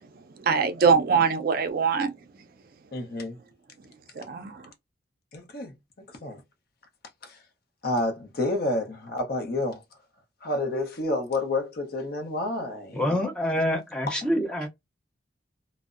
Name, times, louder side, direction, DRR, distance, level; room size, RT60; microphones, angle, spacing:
voice 1, 0.4-2.1 4.3-4.6, right 5 dB, 50° right, 0.4 m, -22 dB
voice 2, 2.9-3.4 5.3-5.7 6.2-6.4 7.2-7.4 7.8-9.8 10.4-13.2 14.1-14.2, left 2 dB, 50° left, 0.6 m, -29 dB
voice 3, 12.9-14.7, left 1 dB, 5° left, 0.5 m, -26 dB
2.5 x 2.0 x 2.4 m
head